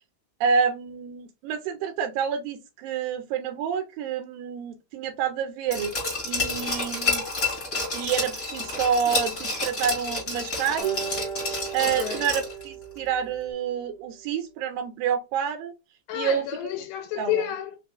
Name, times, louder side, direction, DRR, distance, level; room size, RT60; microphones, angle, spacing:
voice 1, 0.4-5.9 6.3-7.2 7.9-11.2 11.7-15.7 16.1-16.5 17.2-17.4, right 7 dB, 85° right, 2.3 m, -28 dB
Glass, 5.7-12.6 13.0-13.1, left 3 dB, 25° left, 2.1 m, -29 dB
Acoustic guitar, 10.8-14.1, right 6 dB, 55° right, 1.1 m, -37 dB
voice 2, 11.8-12.3 16.1-17.8, left 12 dB, 90° left, 2.4 m, -30 dB
5.2 x 3.4 x 2.3 m
omnidirectional pair, 4.0 m